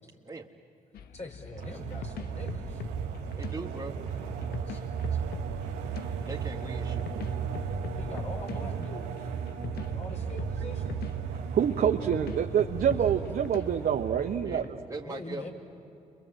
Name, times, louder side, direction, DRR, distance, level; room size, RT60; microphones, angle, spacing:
sound 1, 0.9-14.7, left 7 dB, 70° left, 0.9 m, -43 dB
voice 1, 1.0-2.8 4.7-4.8 8.0-9.3 9.8-11.0 15.0-15.5, left 2 dB, 45° left, 1 dB, 5.0 m, -43 dB
sound 2, 1.5-14.6, right 7 dB, 85° right, 1.2 m, -35 dB
voice 2, 3.4-4.0 6.3-7.2 14.4-14.6 14.9-15.5, right 2 dB, 20° right, 0 dB, 1.6 m, -40 dB
voice 3, 11.3-14.8, right 8 dB, 65° right, 3 dB, 1.0 m, -27 dB
29.0 x 23.5 x 7.7 m, 2.8 s
hypercardioid pair, 45°, 17 cm